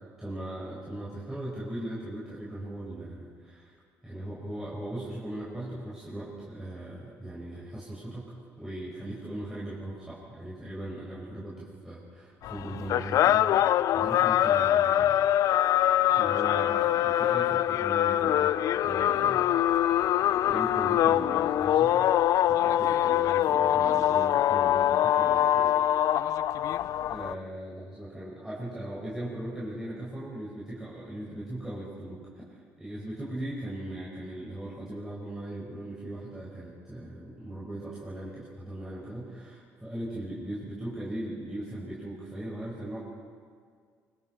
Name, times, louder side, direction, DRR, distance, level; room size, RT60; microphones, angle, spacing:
voice 1, 0.2-3.7 4.0-15.2 15.6-15.8 16.1-18.6 18.8-19.6 20.5-21.9 22.5-25.7 27.1-32.2 32.5-43.0, right 1 dB, 5° right, -7 dB, 5.1 m, -39 dB
sound 1, 12.4-27.3, left 12 dB, 65° left, 0.4 m, -24 dB
25.0 x 24.5 x 4.4 m, 2.1 s
cardioid pair, 115°, 6 cm